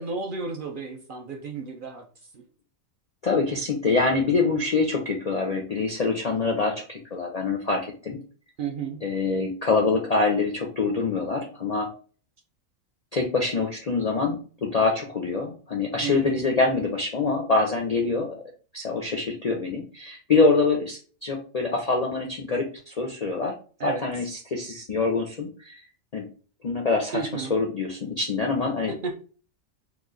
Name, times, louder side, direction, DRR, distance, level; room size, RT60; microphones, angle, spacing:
voice 1, 0.0-2.0 2.3-2.4 8.6-9.0 16.0-16.4 23.8-24.1 27.1-27.5 29.0-29.2, right 4 dB, 60° right, 2 dB, 0.5 m, -32 dB
voice 2, 3.2-8.2 9.0-11.9 13.1-18.4 18.7-23.6 23.8-25.8 26.1-26.3 26.6-28.9, left 3 dB, 65° left, 1 dB, 0.3 m, -25 dB
3.0 x 2.3 x 3.7 m, 0.40 s
omnidirectional pair, 1.4 m